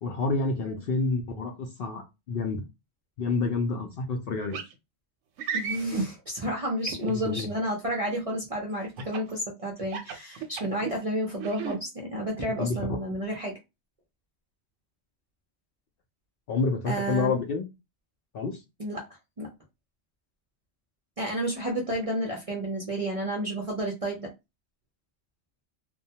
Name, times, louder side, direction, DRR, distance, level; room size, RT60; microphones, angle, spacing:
voice 1, 0.0-2.6 3.2-4.6 7.0-7.5 12.6-12.8 16.5-17.7 18.3-18.6, left 3 dB, 60° left, 3 dB, 0.6 m, -28 dB
sound 1, 4.5-4.7 5.4-6.1 6.8-7.5 9.0-9.3 9.8-10.9 11.4-11.8, right 5 dB, 90° right, 0.9 m, -33 dB
voice 2, 5.5-13.6 16.9-17.4 18.8-19.1 19.4-19.5 21.2-24.3, right 1 dB, 45° right, -1 dB, 0.5 m, -31 dB
2.3 x 2.1 x 2.7 m, 0.24 s
omnidirectional pair, 1.3 m